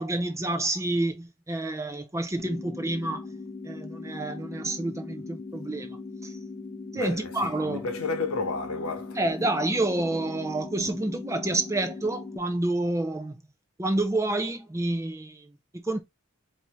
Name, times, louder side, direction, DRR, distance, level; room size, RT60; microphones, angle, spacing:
voice 1, 0.0-3.3 3.6-6.0 6.2-6.4 6.9-7.9 9.1-13.4 13.8-16.0, right 2 dB, 15° right, 0.6 m, -29 dB
sound 1, 2.4-12.4, left 3 dB, 20° left, 0.8 m, -40 dB
voice 2, 7.0-9.2, left 3 dB, 85° left, 1.0 m, -31 dB
4.7 x 2.8 x 3.4 m
head